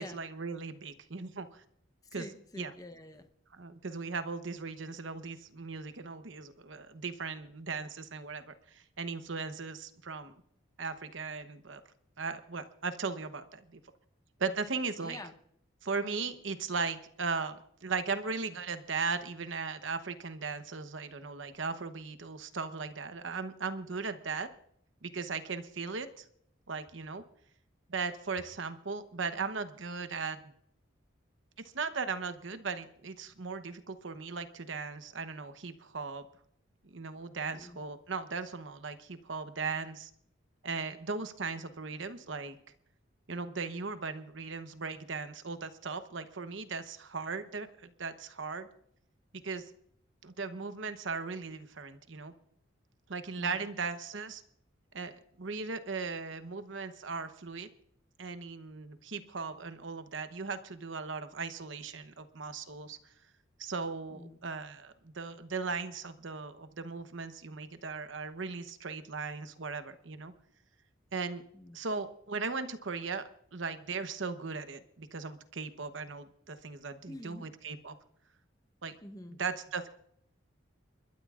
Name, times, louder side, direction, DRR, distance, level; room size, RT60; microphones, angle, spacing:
voice 1, 0.0-1.6 2.1-2.3 2.6-2.7 3.6-10.3 10.8-11.8 12.2-13.8 14.4-15.2 15.8-24.5 25.0-26.3 26.7-27.2 27.9-30.5 31.7-36.2 36.8-40.1 40.6-42.6 43.3-48.7 49.4-49.7 50.2-52.3 53.1-54.4 54.9-57.7 58.2-63.0 63.6-70.3 71.1-71.4 71.7-78.0 78.8-79.0 79.4-79.9, right 4 dB, 70° right, 0.9 m, -38 dB
voice 2, 2.0-3.3 15.0-15.3 37.5-37.8 53.4-53.7 64.1-64.4 71.5-71.8 77.0-77.5 79.0-79.4, left 1 dB, 20° left, 0.9 m, -47 dB
30.0 x 12.5 x 2.5 m
head